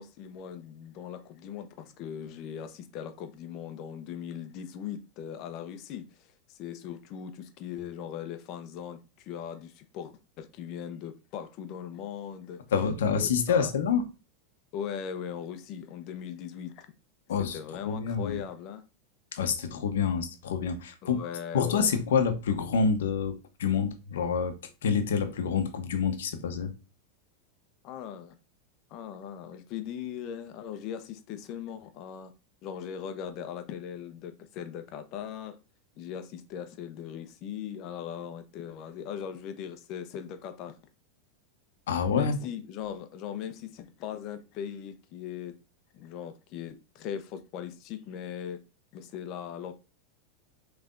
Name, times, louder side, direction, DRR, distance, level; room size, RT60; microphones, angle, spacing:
voice 1, 0.0-12.6 13.1-13.7 14.7-16.9 17.4-18.8 21.0-21.9 27.8-28.3 28.9-32.3 32.6-35.6 36.0-40.8 42.1-45.5 45.9-48.6 48.9-49.7, left 9 dB, 45° left, 0.7 m, -39 dB
voice 2, 12.7-14.1 17.3-17.6 17.9-18.4 19.3-21.2 21.5-24.5 24.8-26.7 41.9-42.4, left 6 dB, 90° left, 0.9 m, -27 dB
5.5 x 3.3 x 2.5 m
supercardioid pair, 135°, 0 cm